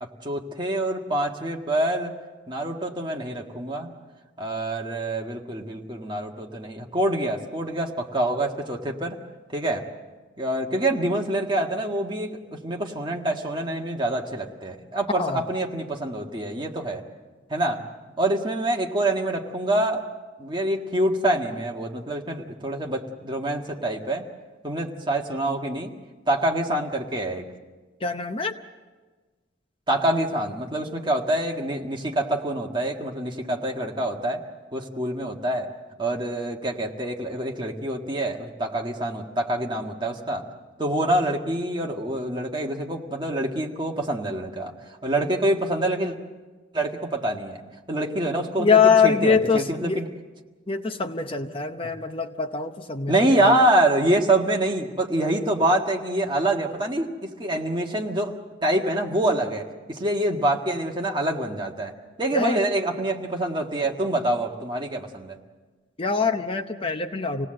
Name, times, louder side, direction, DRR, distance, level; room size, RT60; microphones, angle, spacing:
voice 1, 0.0-2.2 2.5-3.9 4.4-9.2 9.5-9.8 10.4-17.0 17.5-17.8 18.2-20.1 20.4-24.3 24.6-25.9 26.3-27.4 29.9-34.4 34.7-35.7 36.0-40.5 40.8-44.7 45.0-46.2 46.7-47.6 47.9-50.1 53.1-58.3 58.6-61.9 62.2-65.4, right 1 dB, 25° right, 1 dB, 1.7 m, -26 dB
voice 2, 28.0-28.5 41.0-41.2 48.6-50.0 50.7-53.1 53.4-53.5 62.3-62.6 66.0-67.5, left 5 dB, 30° left, 7 dB, 0.8 m, -23 dB
27.0 x 18.0 x 7.7 m, 1.3 s
head